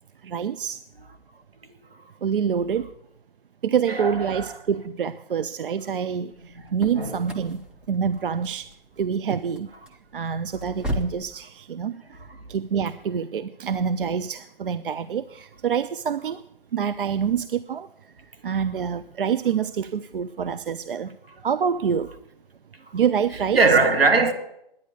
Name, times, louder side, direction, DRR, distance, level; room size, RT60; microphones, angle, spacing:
voice 1, 0.2-0.8 2.2-2.9 3.6-6.3 6.7-8.7 9.0-9.7 10.1-12.0 12.5-16.4 16.7-17.9 18.4-21.1 21.4-22.1 22.9-23.6, right 7 dB, 65° right, 0.5 m, -26 dB
voice 2, 3.9-4.5 6.6-6.7 7.0-7.2 12.1-12.4 22.8-22.9 23.5-24.3, right 4 dB, 85° right, 1.8 m, -21 dB
sound 1, 6.3-11.3, equal, 5° right, 0.7 m, -36 dB
10.5 x 9.6 x 8.1 m
figure-of-eight pair, 125°, 29 cm